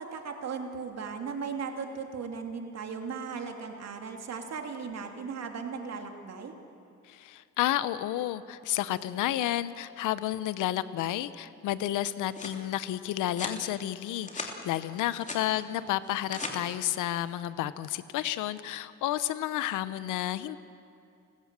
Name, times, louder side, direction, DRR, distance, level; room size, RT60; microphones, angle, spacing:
voice 1, 0.0-6.5, right 5 dB, 60° right, 4 dB, 2.8 m, -37 dB
voice 2, 7.1-20.6, left 13 dB, 90° left, 15 dB, 0.9 m, -31 dB
sound 1, 11.9-12.6 13.3-13.6 14.1-14.5 14.9-15.5 16.0-16.5, left 2 dB, 25° left, 3.1 m, -39 dB
29.5 x 16.0 x 7.5 m, 2.5 s
cardioid pair, 90°, 30 cm